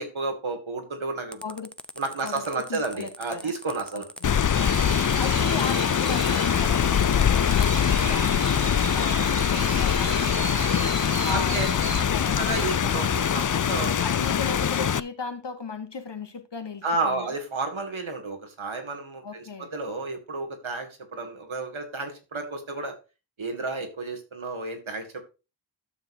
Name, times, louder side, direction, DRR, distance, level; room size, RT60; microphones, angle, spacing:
voice 1, 0.0-1.4 2.0-4.0 5.4-5.5 11.2-11.7 12.4-14.0 16.8-22.9 23.4-25.2, right 3 dB, 85° right, 2.5 m, -31 dB
sound 1, 1.3-8.9, equal, ahead, 0.8 m, -42 dB
voice 2, 1.4-1.7 2.2-3.5 3.9-4.3 5.2-10.6 11.2-11.7 12.1-12.7 14.0-17.3 19.2-19.7, left 5 dB, 60° left, 1.6 m, -36 dB
Rain, 4.2-15.0, left 8 dB, 45° left, 0.5 m, -23 dB
sound 2, 4.6-12.0, right 6 dB, 70° right, 1.0 m, -36 dB
12.5 x 7.0 x 2.8 m
wide cardioid pair, 60°, 46 cm